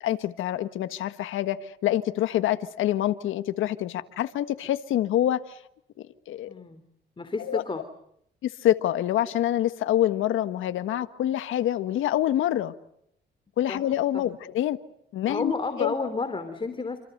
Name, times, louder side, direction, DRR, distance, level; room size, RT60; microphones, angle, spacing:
voice 1, 0.0-5.6 6.3-6.5 7.5-7.6 8.4-12.7 13.6-14.8 15.1-15.5 15.8-15.9, left 12 dB, 80° left, 10 dB, 1.5 m, -26 dB
voice 2, 6.5-6.8 7.2-7.8 13.7-13.8 14.1-14.2 15.3-17.0, left 4 dB, 25° left, 9 dB, 3.2 m, -31 dB
28.0 x 27.0 x 6.8 m, 0.73 s
cardioid pair, 90°, 20 cm